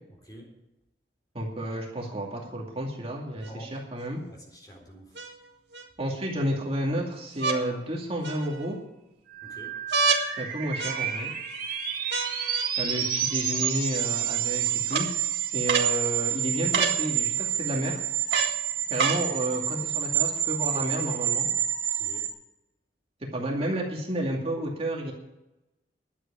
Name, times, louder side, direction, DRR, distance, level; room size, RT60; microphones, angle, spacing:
voice 1, 1.3-4.2 6.0-8.8 10.4-11.3 12.8-15.1 15.5-18.0 18.9-21.5 23.3-25.1, right 1 dB, 35° right, -1 dB, 2.3 m, -31 dB
voice 2, 3.3-3.7 4.3-5.2 9.4-9.8 21.9-22.3, right 1 dB, 25° left, 0 dB, 4.0 m, -47 dB
sound 1, 3.4-3.5 5.2-5.9 7.4-7.6 8.2-8.8 9.9-10.3 10.8-11.3 12.1-12.7 13.6-13.7 14.9-15.1 15.7-15.9 16.7-17.0 18.3-18.6 19.0-19.2 20.1-20.2, right 4 dB, 75° right, 1.8 m, -28 dB
sound 2, 9.3-22.3, right 10 dB, 55° right, 2.3 m, -29 dB
11.5 x 8.2 x 8.5 m, 0.92 s
head